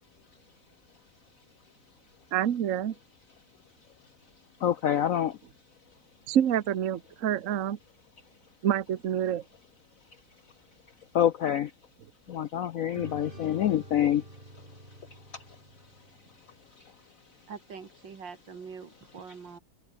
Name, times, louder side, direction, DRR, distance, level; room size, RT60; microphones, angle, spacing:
voice 1, 2.3-2.9 6.3-7.8 8.6-9.4, right 10 dB, 50° right, 1.2 m, -27 dB
voice 2, 4.6-5.4 11.1-11.7 12.3-14.2 15.1-15.6 16.8-16.9, left 10 dB, 70° left, 0.8 m, -27 dB
sound 1, 12.9-16.6, right 1 dB, 25° right, 6.2 m, -48 dB
voice 3, 17.5-19.6, right 6 dB, 70° right, 3.1 m, -44 dB
omnidirectional pair, 2.1 m